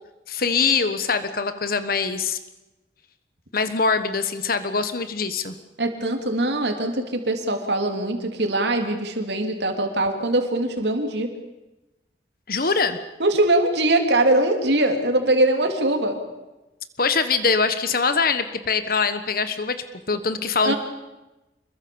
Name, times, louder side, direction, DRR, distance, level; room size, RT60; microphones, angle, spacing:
voice 1, 0.3-2.4 3.5-5.6 12.5-13.0 17.0-19.8 20.1-20.7, left 5 dB, 55° left, 10 dB, 1.4 m, -23 dB
voice 2, 5.8-11.3 13.2-16.2 20.6-20.8, right 1 dB, 75° right, 4 dB, 3.2 m, -22 dB
27.0 x 22.5 x 7.1 m, 1.0 s
head